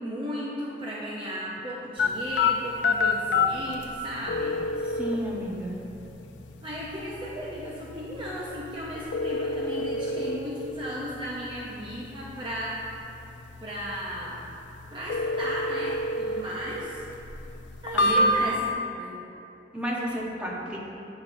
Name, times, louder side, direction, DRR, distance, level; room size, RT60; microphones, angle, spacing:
voice 1, 0.0-4.6 6.6-12.8 13.6-14.4 14.9-17.0 17.8-19.1, equal, 30° right, -6 dB, 0.6 m, -35 dB
sound 1, 2.0-18.7, left 2 dB, 80° left, 0.4 m, -29 dB
voice 2, 4.8-5.8 17.9-18.2 19.7-20.8, equal, 5° right, -5 dB, 0.9 m, -32 dB
8.6 x 5.8 x 2.6 m, 2.8 s
head